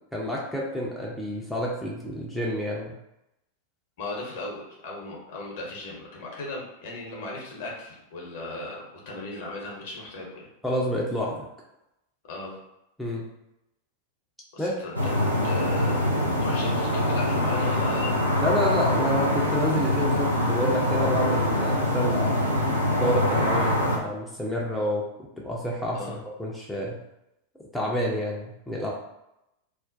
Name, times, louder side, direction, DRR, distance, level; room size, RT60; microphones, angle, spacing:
voice 1, 0.1-2.9 10.6-11.5 13.0-13.3 14.6-14.8 18.4-22.5 22.9-25.0 25.4-27.0 27.7-28.9, equal, 5° left, -4 dB, 0.5 m, -29 dB
voice 2, 4.0-10.4 12.3-12.6 14.5-15.1 15.4-16.2 16.4-18.2 25.9-26.2, left 2 dB, 55° left, -3 dB, 0.8 m, -36 dB
sound 1, 14.9-24.0, left 1 dB, 85° right, 0.4 m, -24 dB
2.4 x 2.1 x 2.5 m, 0.86 s
figure-of-eight pair, 90°, 0 cm